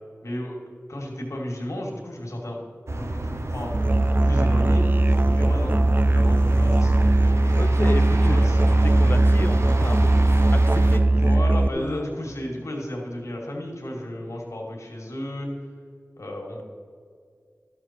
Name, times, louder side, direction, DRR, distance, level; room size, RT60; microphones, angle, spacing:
voice 1, 0.2-0.6 0.9-2.6 3.0-3.8 4.2-4.8 5.3-5.8 6.1-7.0 8.2-8.9 11.1-15.5 16.2-16.6, left 1 dB, 85° left, -1 dB, 2.1 m, -33 dB
sound 1, 2.9-11.0, right 1 dB, 70° right, 1.0 m, -30 dB
Musical instrument, 3.7-11.7, right 2 dB, 40° right, 0.4 m, -19 dB
voice 2, 7.6-8.4 8.7-11.0 11.7-12.1, left 2 dB, 45° left, 10 dB, 0.7 m, -32 dB
12.0 x 7.1 x 4.4 m, 2.1 s
wide cardioid pair, 45°, 5 cm